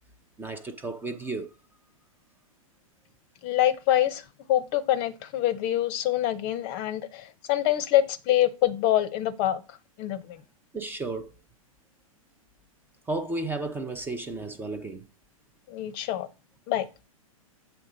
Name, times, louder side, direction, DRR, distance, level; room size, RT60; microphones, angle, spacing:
voice 1, 0.4-1.5 10.7-11.3 13.1-15.1, right 2 dB, 10° right, 0.6 m, -33 dB
voice 2, 3.4-4.2 4.5-10.4 15.7-16.3 16.7-16.9, left 13 dB, 35° left, 0.7 m, -25 dB
7.7 x 3.5 x 5.0 m
figure-of-eight pair, 110°, 18 cm